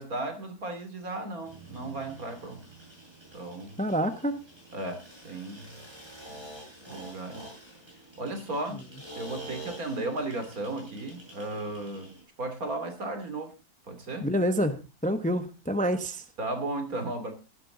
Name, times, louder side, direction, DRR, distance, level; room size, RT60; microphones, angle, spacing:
voice 1, 0.0-2.6 3.3-3.8 4.7-5.8 6.3-6.5 6.9-7.5 8.2-8.8 9.1-12.1 12.4-13.5 13.9-14.3 16.4-17.3, right 2 dB, 70° right, 6 dB, 3.3 m, -35 dB
sound 1, 1.4-12.2, right 2 dB, 15° right, 7.1 m, -47 dB
voice 2, 3.8-4.4 14.2-16.2, equal, 5° left, 9 dB, 0.9 m, -27 dB
16.0 x 11.5 x 3.9 m, 0.30 s
omnidirectional pair, 1.6 m